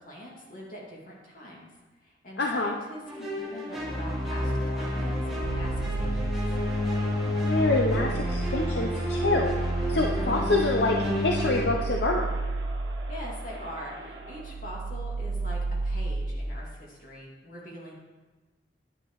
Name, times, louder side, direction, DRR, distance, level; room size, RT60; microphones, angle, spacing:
voice 1, 0.0-1.7 2.0-6.3 13.1-17.9, equal, 50° left, -3 dB, 2.2 m, -43 dB
voice 2, 2.4-2.8 7.4-9.5 9.9-12.3, left 2 dB, 75° left, 1 dB, 0.7 m, -26 dB
sound 1, 3.1-11.6, left 1 dB, 5° right, 2.0 m, -29 dB
sound 2, 5.4-6.9 7.3-13.8 14.1-16.4, right 3 dB, 50° right, 0.7 m, -33 dB
Crowd, 6.5-14.6, right 2 dB, 65° right, 1.2 m, -46 dB
10.0 x 9.8 x 3.1 m, 1.3 s
head